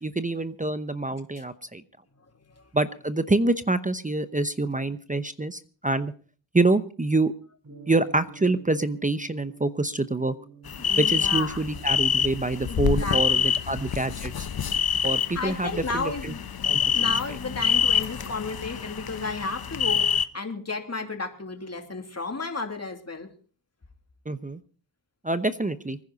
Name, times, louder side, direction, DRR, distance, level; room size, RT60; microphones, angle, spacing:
voice 1, 0.0-1.8 2.7-6.1 6.5-7.3 7.9-10.3 11.0-14.5 15.0-16.3 16.7-17.1 24.3-24.6 25.2-26.0, right 2 dB, 15° right, 12 dB, 0.8 m, -26 dB
Gong, 7.6-21.8, right 5 dB, 35° right, 4.4 m, -52 dB
sound 1, 10.7-20.3, left 8 dB, 50° left, 1.0 m, -26 dB
voice 2, 10.8-11.6 12.7-13.5 15.3-16.4 16.9-23.3, left 3 dB, 30° left, 4 dB, 2.9 m, -33 dB
24.5 x 10.5 x 4.1 m, 0.40 s
cardioid pair, 65°, 48 cm